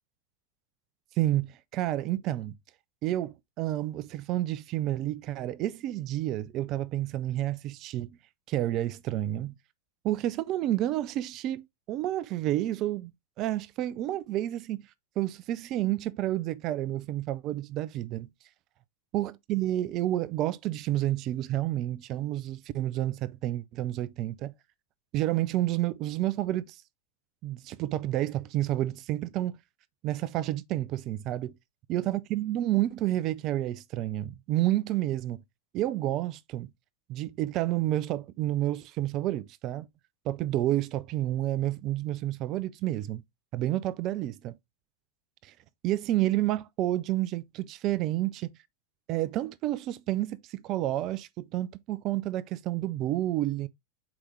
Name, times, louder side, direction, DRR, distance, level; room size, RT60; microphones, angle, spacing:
voice 1, 1.2-2.5 3.0-8.2 8.5-9.5 10.0-13.1 13.4-14.8 15.2-18.3 19.1-24.5 25.1-26.8 27.4-29.6 30.0-31.5 31.9-35.4 35.7-36.7 37.1-39.9 40.3-43.2 43.5-44.6 45.4-45.5 45.8-48.5 49.1-53.7, right 14 dB, 35° right, 0.4 m, -30 dB
7.2 x 4.9 x 3.0 m
figure-of-eight pair, 90°, 0 cm